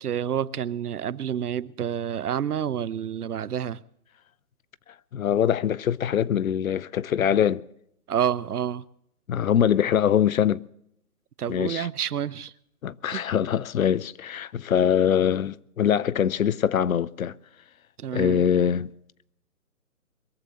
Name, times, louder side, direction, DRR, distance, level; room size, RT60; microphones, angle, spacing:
voice 1, 0.0-3.8 8.1-8.8 11.4-12.5 13.1-13.2 18.0-18.4, right 9 dB, 80° right, 0.7 m, -28 dB
voice 2, 5.1-7.6 9.3-10.6 11.5-11.9 12.8-17.4 18.1-18.9, left 9 dB, 65° left, 0.6 m, -23 dB
22.0 x 7.8 x 6.9 m
hypercardioid pair, 155°, 45 cm